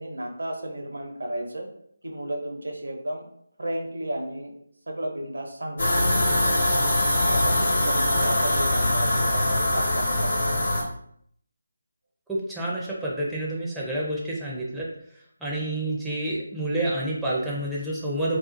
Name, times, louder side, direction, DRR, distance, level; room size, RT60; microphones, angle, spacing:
voice 1, 0.0-1.7 2.0-3.3 3.6-4.5 4.9-6.6 7.2-10.7, right 1 dB, 75° right, 2 dB, 0.6 m, -33 dB
sound 1, 5.8-10.8, left 1 dB, 60° left, 1.0 m, -22 dB
voice 2, 12.3-14.9 15.4-18.4, right 1 dB, ahead, -7 dB, 0.4 m, -28 dB
2.4 x 2.4 x 2.5 m, 0.68 s
figure-of-eight pair, 160°, 0 cm